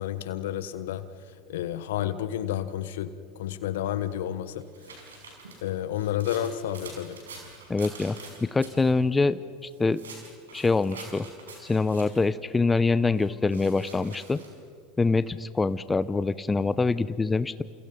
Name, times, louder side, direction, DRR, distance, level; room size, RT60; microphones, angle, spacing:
voice 1, 0.0-3.1 3.4-4.6 5.6-7.2, left 11 dB, 75° left, 13 dB, 1.3 m, -31 dB
sound 1, 4.0-8.9 9.6-12.3 13.2-14.5, right 4 dB, 85° right, 5.8 m, -46 dB
voice 2, 7.7-8.2 8.4-10.0 10.5-11.3 11.6-14.4 15.0-17.6, left 3 dB, 15° left, 15 dB, 0.8 m, -25 dB
29.5 x 28.5 x 5.5 m, 2.1 s
hypercardioid pair, 80°, 0 cm